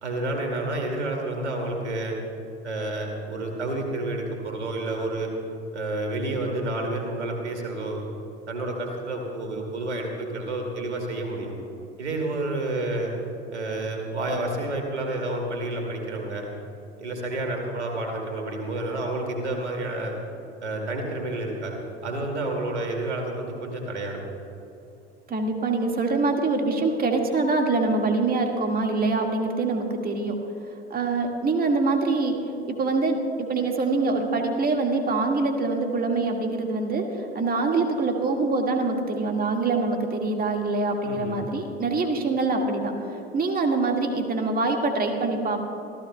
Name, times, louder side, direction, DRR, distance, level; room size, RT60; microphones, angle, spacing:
voice 1, 0.0-2.2 2.6-5.3 5.7-8.0 8.5-11.6 12.0-13.1 13.5-16.5 17.0-20.1 20.6-24.2 41.0-41.4, right 2 dB, 80° right, 2 dB, 2.3 m, -30 dB
voice 2, 25.3-30.4 30.9-32.4 32.7-37.1 37.3-42.9 43.3-45.6, right 3 dB, 25° right, 2 dB, 1.8 m, -24 dB
26.0 x 15.5 x 2.2 m, 2.7 s
figure-of-eight pair, 75°, 34 cm